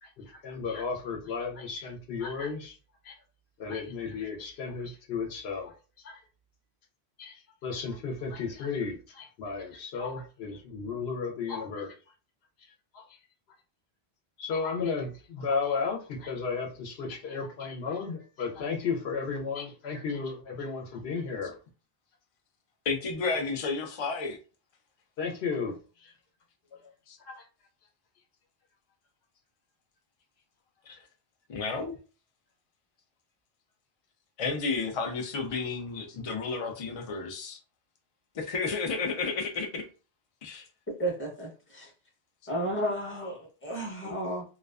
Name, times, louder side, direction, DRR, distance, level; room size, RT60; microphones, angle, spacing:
voice 1, 0.0-2.7 3.0-3.2 3.6-5.7 6.0-6.2 7.2-12.0 12.9-13.0 14.4-21.6 25.2-26.1 27.3-27.4, left 5 dB, 75° left, 0.9 m, -34 dB
voice 2, 22.9-24.4 27.1-27.2 30.9-31.0 31.5-31.9 34.4-37.6 38.3-39.8 40.4-40.7 44.0-44.1, left 4 dB, 60° left, 0.3 m, -32 dB
voice 3, 41.0-41.9 42.5-44.4, right 1 dB, 15° left, 0.7 m, -33 dB
2.3 x 2.3 x 2.3 m
omnidirectional pair, 1.1 m